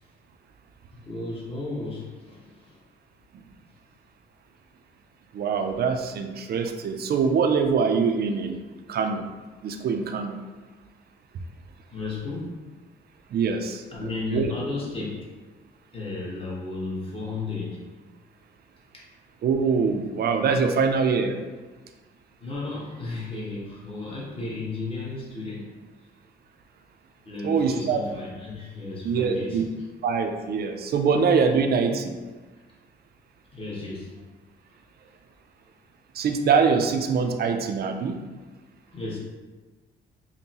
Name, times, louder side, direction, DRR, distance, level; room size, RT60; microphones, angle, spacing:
voice 1, 0.9-2.8 11.9-12.6 13.9-15.3 15.9-17.8 18.9-19.1 22.4-25.7 27.2-29.6 33.5-34.2 38.9-39.2, left 3 dB, 25° left, -5 dB, 1.2 m, -34 dB
voice 2, 5.3-8.6 8.9-9.2 9.6-10.4 13.3-14.5 19.4-21.3 27.4-28.0 29.0-29.7 30.0-32.1 36.1-38.2, right 5 dB, 55° right, 5 dB, 0.5 m, -24 dB
5.3 x 2.1 x 2.9 m, 1.3 s
cardioid pair, 90°, 20 cm